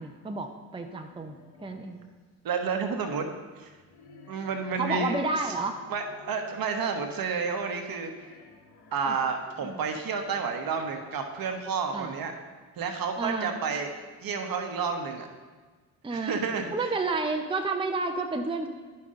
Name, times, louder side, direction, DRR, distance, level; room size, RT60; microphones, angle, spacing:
voice 1, 0.0-1.3 1.6-2.0 4.8-5.8 9.1-9.2 9.6-9.8 11.9-12.2 13.2-13.5 16.0-16.4 16.7-18.7, right 3 dB, 10° right, 4 dB, 0.8 m, -30 dB
sound 1, 1.1-2.1 3.6-11.7, left 4 dB, 60° left, 1.4 m, -53 dB
voice 2, 2.4-3.7 4.3-5.2 5.4-5.5 5.9-8.3 8.9-12.3 12.8-13.9 14.2-15.3 16.1-16.9, right 5 dB, 50° right, 5 dB, 1.2 m, -30 dB
10.5 x 5.7 x 3.8 m, 1.4 s
hypercardioid pair, 55°, 44 cm